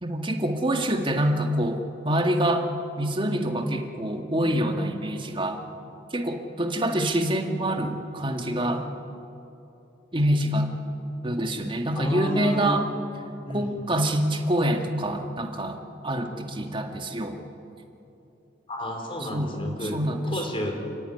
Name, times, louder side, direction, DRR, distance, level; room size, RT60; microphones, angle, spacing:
voice 1, 0.0-2.7 3.0-5.6 6.1-8.9 10.1-10.7 11.2-12.9 13.5-15.8 16.0-17.4 19.3-19.5 19.9-20.4, right 1 dB, 30° right, 4 dB, 1.9 m, -26 dB
voice 2, 12.0-12.8 13.4-13.7 18.7-20.0 20.2-20.7, equal, 30° left, 3 dB, 4.0 m, -31 dB
29.0 x 16.0 x 9.6 m, 2.9 s
head